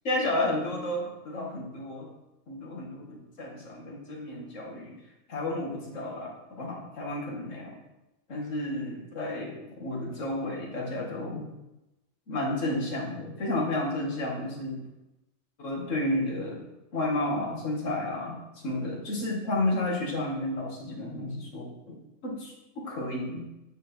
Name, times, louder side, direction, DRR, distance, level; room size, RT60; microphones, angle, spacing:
voice 1, 0.1-2.1 2.5-5.0 5.3-7.8 8.3-11.5 12.3-14.8 15.6-16.6 16.9-22.0 22.2-23.5, left 1 dB, 85° left, -1 dB, 2.0 m, -32 dB
8.4 x 4.5 x 4.4 m, 0.94 s
omnidirectional pair, 1.3 m